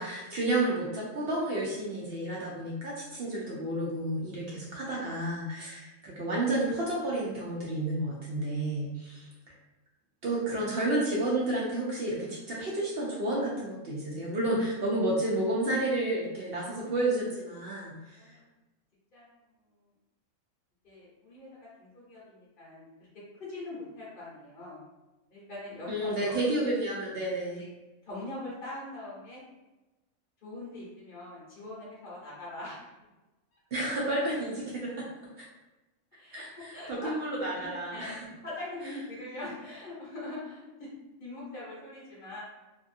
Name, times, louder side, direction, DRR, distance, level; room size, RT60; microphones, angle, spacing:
voice 1, 0.0-9.3 10.2-18.2 25.9-27.6 33.7-35.1 35.4-35.5 36.3-38.3, right 1 dB, 60° right, -4 dB, 0.6 m, -31 dB
voice 2, 20.8-21.5 21.8-22.9 23.4-24.8 25.3-26.1 27.5-27.6 28.0-29.4 30.4-32.8 33.5-33.6 36.1-37.1 37.5-40.9 41.2-42.4, left 2 dB, 45° left, -8 dB, 0.9 m, -42 dB
2.6 x 2.5 x 2.5 m, 1.1 s
omnidirectional pair, 1.4 m